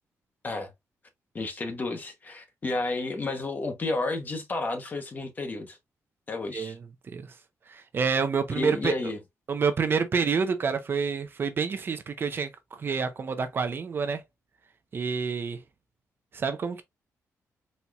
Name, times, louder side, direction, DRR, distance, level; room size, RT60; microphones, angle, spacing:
voice 1, 1.3-5.8 6.3-6.7 8.5-9.2, left 3 dB, 30° left, 0.9 m, -31 dB
voice 2, 7.7-9.1 9.5-14.2 14.9-15.6 16.3-16.8, right 5 dB, 40° right, 0.6 m, -28 dB
4.2 x 2.9 x 2.3 m
wide cardioid pair, 140°, 6 cm